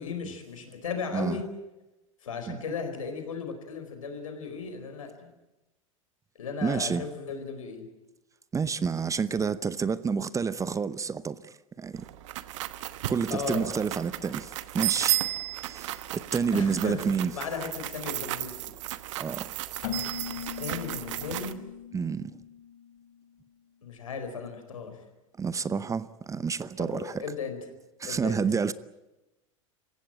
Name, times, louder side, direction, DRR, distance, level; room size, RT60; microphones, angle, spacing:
voice 1, 0.0-1.4 2.2-5.3 6.4-7.9 13.3-13.7 16.5-17.0 17.3-18.7 20.3-21.6 23.8-25.0 26.8-27.6 28.1-28.4, left 5 dB, 80° left, 4.5 m, -36 dB
voice 2, 6.6-7.0 8.5-12.1 13.1-15.2 15.6-17.3 19.2-19.5 21.9-22.4 25.4-27.2 28.0-28.7, right 5 dB, 20° right, 0.8 m, -29 dB
sound 1, 11.9-21.5, right 16 dB, 65° right, 1.2 m, -34 dB
Keyboard (musical), 19.8-23.5, left 9 dB, 55° left, 3.6 m, -40 dB
27.0 x 16.0 x 9.0 m
figure-of-eight pair, 85°, 17 cm